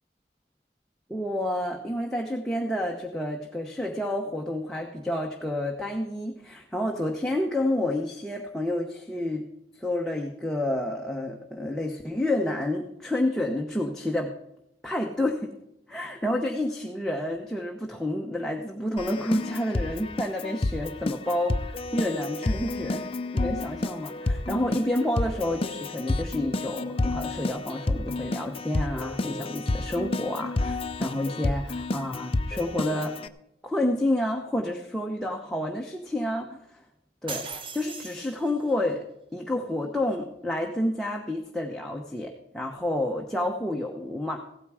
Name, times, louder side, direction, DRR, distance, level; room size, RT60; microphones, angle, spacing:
voice 1, 1.1-9.5 9.7-14.3 14.8-15.5 15.9-33.2 33.6-36.8 37.2-37.5 37.7-39.0 39.3-44.4, left 1 dB, 5° left, 0 dB, 0.9 m, -29 dB
Keyboard (musical), 19.0-33.3, left 2 dB, 30° left, 0.5 m, -30 dB
sound 1, 37.3-38.7, right 4 dB, 30° right, 0.9 m, -38 dB
16.0 x 9.1 x 4.8 m, 0.85 s
head